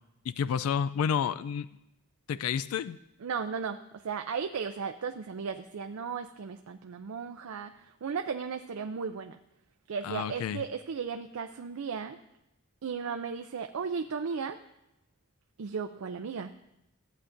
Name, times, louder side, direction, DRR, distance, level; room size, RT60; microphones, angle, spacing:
voice 1, 0.2-1.7 2.3-3.0 10.0-10.6, left 7 dB, 90° left, 16 dB, 0.3 m, -30 dB
voice 2, 3.2-7.7 8.0-9.4 9.9-12.2 12.8-14.6 15.6-16.5, right 6 dB, 80° right, 6 dB, 0.5 m, -35 dB
15.0 x 8.3 x 2.6 m, 0.87 s
head